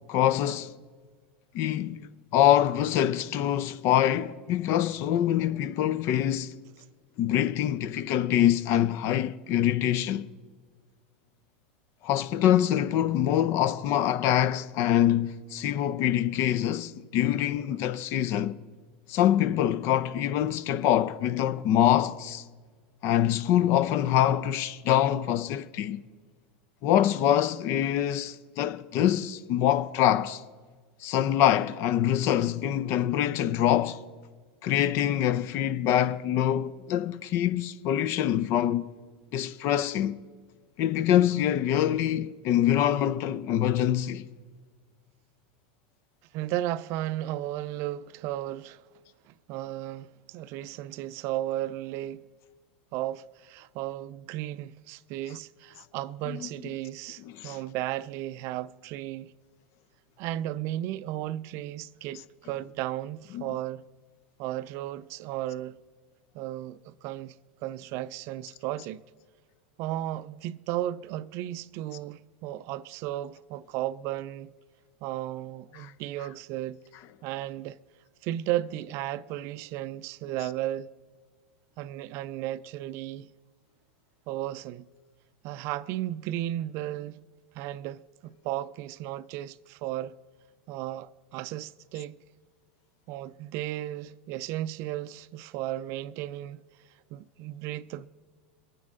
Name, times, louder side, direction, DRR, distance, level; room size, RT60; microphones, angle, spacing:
voice 1, 0.1-0.7 1.5-6.5 7.2-10.3 12.0-18.6 19.1-22.4 23.0-26.0 26.8-30.4 31.0-34.0 34.6-38.9 39.3-40.2 40.8-44.3 56.3-56.4 57.3-57.6 63.3-63.5 75.7-75.9, left 11 dB, 50° left, 0.6 m, -25 dB
voice 2, 46.3-48.8 49.3-52.2 52.9-59.3 60.2-63.8 64.4-65.8 66.3-67.4 67.6-69.0 69.8-74.5 75.0-76.8 77.2-77.8 78.2-80.9 81.8-83.3 84.3-84.9 85.4-87.2 87.5-90.2 90.7-92.2 93.1-96.6 97.1-98.1, right 14 dB, 50° right, 0.4 m, -34 dB
23.0 x 9.4 x 3.7 m
hypercardioid pair, 90°, 6 cm